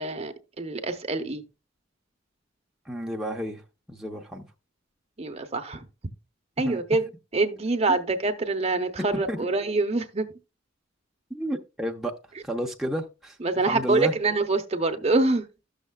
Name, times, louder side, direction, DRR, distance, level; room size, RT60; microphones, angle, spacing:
voice 1, 0.0-1.4 5.2-5.8 6.6-7.0 7.3-10.3 13.4-15.4, right 3 dB, 35° right, 0.7 m, -25 dB
voice 2, 2.9-3.6 3.9-4.5 6.6-6.8 7.9-8.0 9.3-9.4 11.3-12.1 12.4-14.1, equal, ahead, 0.6 m, -31 dB
13.0 x 6.4 x 2.3 m
head